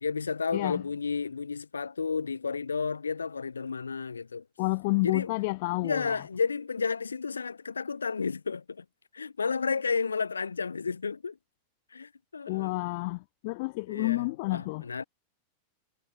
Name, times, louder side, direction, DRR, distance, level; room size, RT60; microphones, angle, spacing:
voice 1, 0.0-4.4 5.0-5.3 5.8-8.8 9.1-11.4 11.9-12.7 13.9-15.0, left 5 dB, 75° left, 1.2 m, -32 dB
voice 2, 4.6-6.2 12.5-14.8, left 25 dB, 50° left, 0.4 m, -30 dB
figure-of-eight pair, 90°, 0 cm